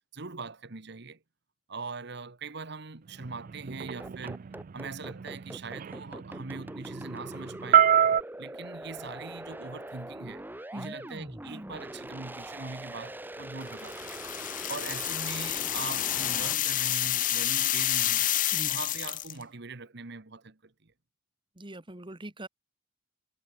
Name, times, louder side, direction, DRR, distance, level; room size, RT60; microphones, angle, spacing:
voice 1, 0.1-1.2 1.7-4.4 4.7-7.9 8.4-10.5 10.7-14.2 14.7-18.3 18.7-20.9, right 4 dB, 65° right, 1.4 m, -41 dB
sound 1, 3.2-8.2, right 9 dB, 45° right, 0.4 m, -27 dB
sound 2, 4.0-16.5, right 1 dB, 10° right, 1.3 m, -42 dB
sound 3, 13.8-19.4, left 13 dB, 45° left, 0.7 m, -29 dB
voice 2, 21.6-22.5, right 1 dB, 25° right, 2.0 m, -41 dB
head